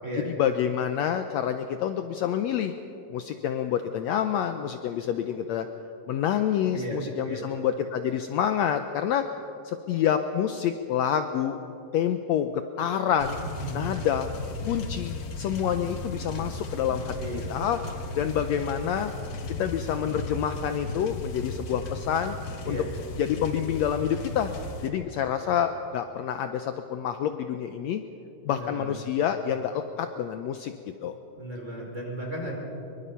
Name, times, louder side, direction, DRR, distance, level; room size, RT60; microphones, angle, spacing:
voice 1, 0.2-2.7 3.1-5.7 6.1-9.3 9.6-11.6 11.9-13.4 13.7-14.3 14.6-17.8 18.2-19.1 19.6-22.4 22.6-22.9 23.2-24.5 24.8-28.0 28.4-30.7 31.0-31.1, left 9 dB, 80° left, 8 dB, 1.5 m, -27 dB
sound 1, 13.2-24.9, left 2 dB, 50° left, 1.3 m, -36 dB
voice 2, 28.5-28.9 31.4-32.5, right 1 dB, 20° right, -1 dB, 4.9 m, -35 dB
25.0 x 23.5 x 5.7 m, 3.0 s
omnidirectional pair, 4.0 m